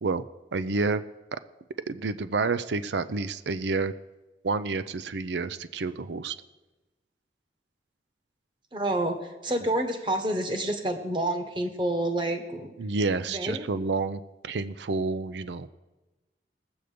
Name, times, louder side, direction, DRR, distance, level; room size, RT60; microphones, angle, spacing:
voice 1, 0.5-1.0 1.9-3.9 4.4-6.4 12.8-15.7, right 3 dB, 80° right, 13 dB, 0.5 m, -29 dB
voice 2, 8.7-12.7 13.3-13.7, right 1 dB, 25° right, 5 dB, 1.4 m, -28 dB
19.0 x 7.9 x 5.1 m, 1.1 s
head